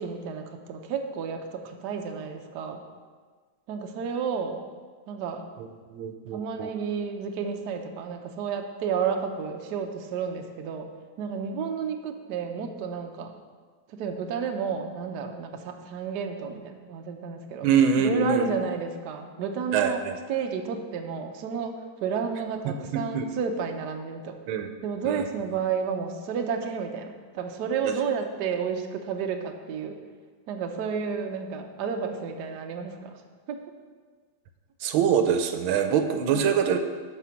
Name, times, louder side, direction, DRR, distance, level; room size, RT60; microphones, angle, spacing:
voice 1, 0.0-2.8 3.7-4.6 5.1-5.5 6.3-10.9 11.2-13.3 13.9-17.7 18.0-20.0 20.3-24.4 24.8-30.0 30.5-33.2 33.5-33.6 36.3-36.6, right 6 dB, 65° right, 4 dB, 1.2 m, -31 dB
voice 2, 5.9-6.7 17.6-18.6 19.7-20.1 22.7-23.3 24.5-24.7 25.0-25.2 27.8-27.9 34.8-36.8, right 7 dB, 85° right, 7 dB, 1.5 m, -24 dB
11.0 x 4.4 x 5.7 m, 1.5 s
omnidirectional pair, 2.2 m